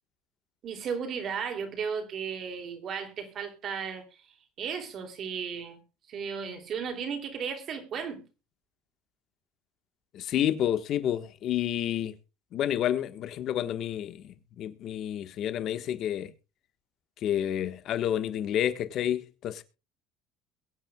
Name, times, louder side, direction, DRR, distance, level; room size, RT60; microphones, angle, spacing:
voice 1, 0.6-4.0 4.6-5.8 6.1-8.2, right 6 dB, 35° right, 2.9 m, -35 dB
voice 2, 10.1-12.1 12.5-16.3 17.2-19.6, left 10 dB, 45° left, 1.4 m, -29 dB
22.5 x 9.2 x 2.3 m
cardioid pair, 160°, 0 cm